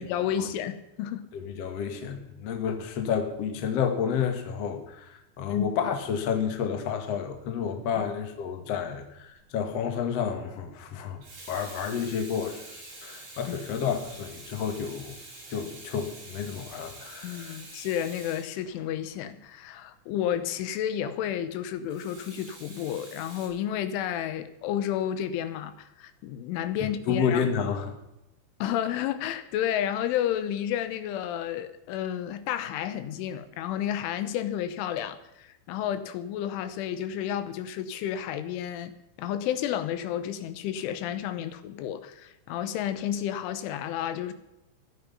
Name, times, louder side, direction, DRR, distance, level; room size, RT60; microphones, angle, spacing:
voice 1, 0.0-1.3 5.5-5.7 8.0-8.1 13.5-13.6 17.2-27.4 28.6-38.9 39.2-44.3, left 10 dB, 80° left, 3.4 m, -31 dB
voice 2, 1.3-11.2 11.5-12.6 13.0-15.1 15.5-17.6 27.1-27.9, left 7 dB, 60° left, 1.6 m, -30 dB
Water tap faucet / Sink (filling or washing), 9.4-9.7 11.0-19.2 21.9-23.5, right 2 dB, 40° right, 9.2 m, -46 dB
15.5 x 12.0 x 5.5 m
omnidirectional pair, 5.7 m